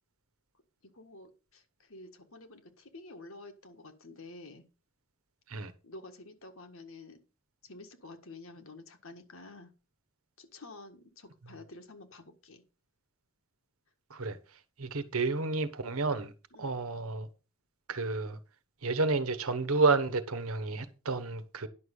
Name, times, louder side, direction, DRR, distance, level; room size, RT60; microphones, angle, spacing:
voice 1, 0.8-4.6 5.8-7.2 7.6-9.7 10.4-12.6 16.5-16.7, left 2 dB, 70° left, 1.7 m, -50 dB
voice 2, 14.8-16.3 16.6-17.3 17.9-18.4 18.8-21.7, right 3 dB, 75° right, 1.2 m, -30 dB
10.5 x 6.5 x 5.4 m
head